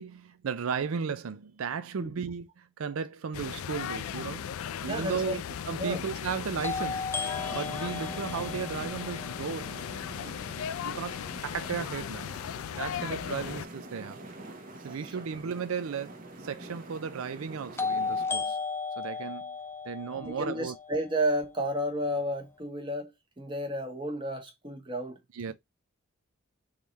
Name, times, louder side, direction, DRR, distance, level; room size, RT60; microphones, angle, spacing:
voice 1, 0.0-4.5 4.8-7.1 7.5-10.3 10.8-12.3 12.8-14.2 14.8-18.6 19.0-19.6 19.8-20.8 25.3-25.5, right 6 dB, 85° right, 0.5 m, -35 dB
sound 1, 3.3-13.7, left 8 dB, 90° left, 0.4 m, -37 dB
sound 2, 4.7-4.8 6.6-10.5 17.8-21.8, left 4 dB, 10° left, 0.4 m, -35 dB
voice 2, 4.9-5.4 5.8-6.0 20.2-23.1 23.4-25.2 25.5-25.6, equal, 25° right, 1.2 m, -32 dB
sound 3, 7.3-18.3, right 2 dB, 40° right, 0.9 m, -46 dB
3.7 x 3.2 x 4.0 m
head